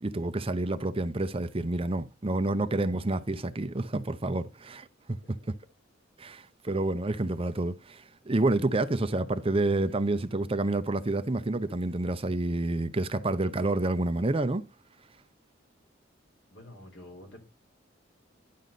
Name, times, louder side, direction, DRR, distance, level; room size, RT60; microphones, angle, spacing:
voice 1, 0.0-5.4 6.2-14.6, right 2 dB, 30° right, 0.7 m, -29 dB
voice 2, 16.5-17.4, left 1 dB, 65° left, 4.0 m, -48 dB
11.0 x 6.4 x 4.1 m
head